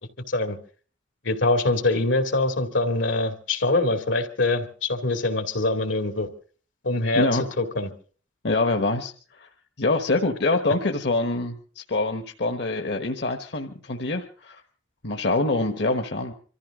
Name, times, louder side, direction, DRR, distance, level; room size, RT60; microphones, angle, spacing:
voice 1, 1.2-6.3 6.8-7.3 7.6-7.9, left 2 dB, 80° left, 6 dB, 2.4 m, -24 dB
voice 2, 7.2-7.5 8.4-9.5 9.8-14.6 15.0-16.3, left 2 dB, 60° left, 3 dB, 1.3 m, -25 dB
25.5 x 14.5 x 3.8 m, 0.41 s
head